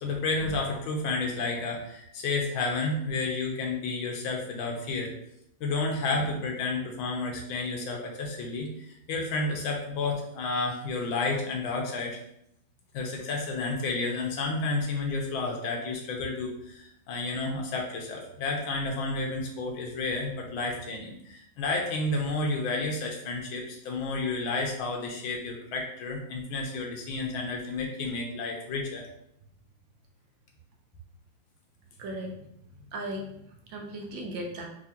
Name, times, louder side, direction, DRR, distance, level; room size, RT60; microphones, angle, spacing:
voice 1, 0.0-5.1 5.6-12.2 12.9-29.0, left 3 dB, 80° left, 1 dB, 1.6 m, -31 dB
voice 2, 32.0-34.7, right 1 dB, 75° right, 1 dB, 1.4 m, -38 dB
4.6 x 2.8 x 2.8 m, 0.74 s
omnidirectional pair, 2.2 m